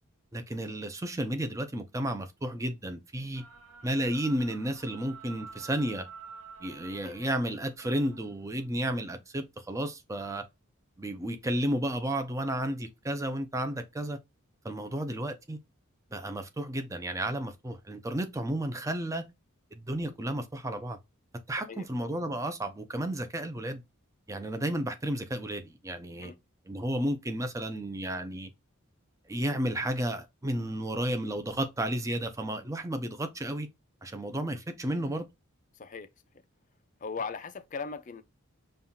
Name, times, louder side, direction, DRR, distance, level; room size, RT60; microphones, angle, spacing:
voice 1, 0.3-3.4 3.8-6.1 6.6-10.4 11.0-14.2 14.6-15.6 16.1-19.3 19.7-21.0 21.5-23.8 24.3-26.3 26.7-28.5 29.3-33.7 34.0-35.3, right 1 dB, 15° right, 0.5 m, -32 dB
sound 1, 3.3-8.9, right 5 dB, 85° right, 0.7 m, -49 dB
voice 2, 35.7-36.1 37.0-38.2, left 5 dB, 35° left, 0.4 m, -38 dB
5.4 x 2.4 x 2.7 m
head